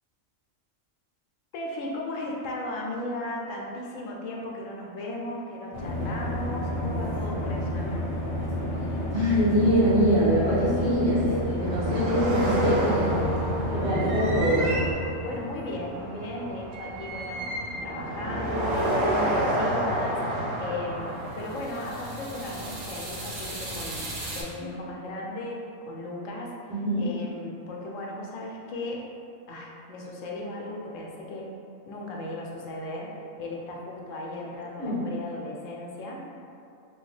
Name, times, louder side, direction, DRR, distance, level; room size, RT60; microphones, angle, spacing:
voice 1, 1.5-8.1 13.7-14.1 15.2-26.6 27.0-29.0 29.5-31.5 31.9-33.1 33.4-36.2, left 1 dB, 80° left, -2 dB, 0.9 m, -36 dB
sound 1, 5.7-14.9, equal, 65° left, 0.3 m, -30 dB
voice 2, 9.1-13.1 13.7-14.7 26.7-27.1 34.8-35.0, equal, 55° right, -9 dB, 1.2 m, -24 dB
sound 2, 11.6-24.4, right 1 dB, 75° right, 1.1 m, -30 dB
2.9 x 2.8 x 3.1 m, 2.6 s
omnidirectional pair, 1.3 m